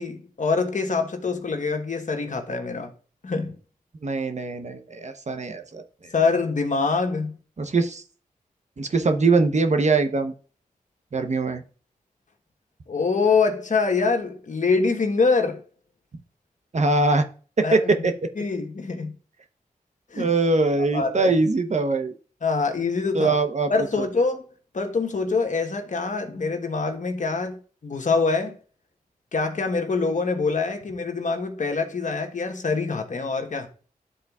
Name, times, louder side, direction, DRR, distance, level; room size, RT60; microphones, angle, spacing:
voice 1, 0.0-2.9 3.2-3.6 6.1-7.4 12.9-15.6 17.6-18.1 18.4-19.1 20.1-20.3 20.9-21.3 22.4-23.3 23.7-24.5 24.7-28.6 29.3-33.7, left 4 dB, 55° left, 1.1 m, -25 dB
voice 2, 4.0-6.1 7.6-8.0 8.8-10.3 11.1-11.6 16.7-17.2 17.6-18.3 20.2-22.1 23.1-23.7 24.0-24.1, right 3 dB, 50° right, 0.8 m, -22 dB
11.5 x 3.9 x 2.3 m
cardioid pair, 50°, 15 cm